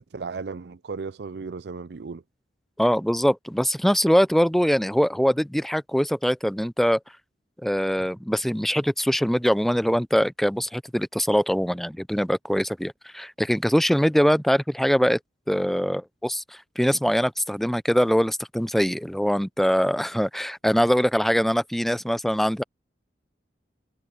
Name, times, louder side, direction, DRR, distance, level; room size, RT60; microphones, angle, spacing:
voice 1, 0.0-2.2, right 4 dB, 65° right, 0.5 m, -35 dB
voice 2, 2.8-7.0 7.6-15.2 15.5-16.4 16.8-22.6, equal, ahead, 0.4 m, -22 dB
head